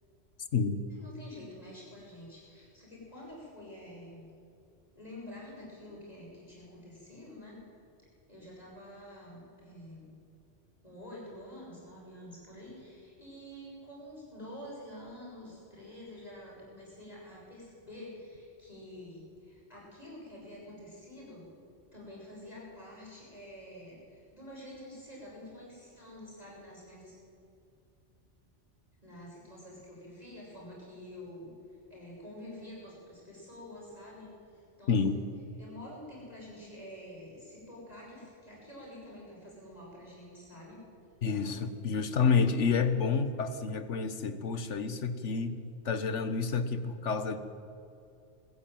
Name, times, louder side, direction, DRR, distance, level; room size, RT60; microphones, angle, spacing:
voice 1, 0.9-4.3 4.9-7.6 8.3-10.1 10.8-21.4 21.9-27.1 29.0-31.5 31.9-35.3 35.5-40.8, left 1 dB, 30° left, -5 dB, 6.8 m, -48 dB
voice 2, 34.9-35.2 41.2-45.6 45.8-47.4, left 5 dB, 75° left, 10 dB, 1.5 m, -29 dB
20.0 x 15.0 x 9.1 m, 2.6 s
omnidirectional pair, 1.2 m